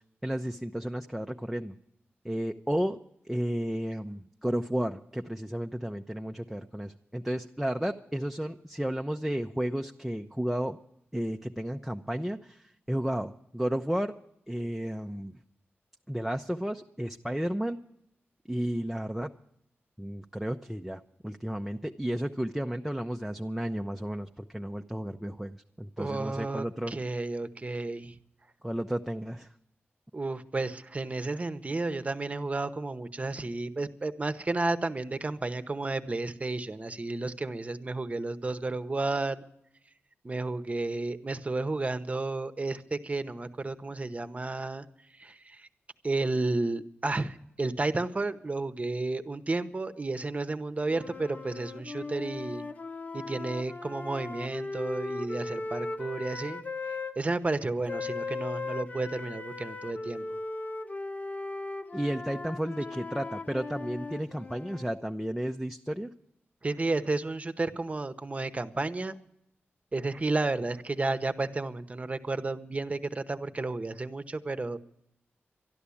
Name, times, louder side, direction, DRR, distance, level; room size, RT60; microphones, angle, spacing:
voice 1, 0.2-1.7 2.2-3.0 3.3-10.8 11.1-14.1 14.5-15.4 16.1-17.8 18.5-19.3 20.0-26.9 28.6-29.5 61.9-66.1, equal, 5° right, 4 dB, 0.6 m, -33 dB
voice 2, 26.0-28.2 30.1-39.4 40.2-44.9 45.2-45.7 46.0-52.6 53.1-56.6 57.2-60.2 66.6-69.1 69.9-74.8, right 2 dB, 30° right, 11 dB, 0.9 m, -32 dB
sound 1, 50.9-57.2 57.9-65.0, left 3 dB, 40° left, 1.0 m, -38 dB
12.5 x 11.5 x 8.5 m, 0.75 s
wide cardioid pair, 80°, 4 cm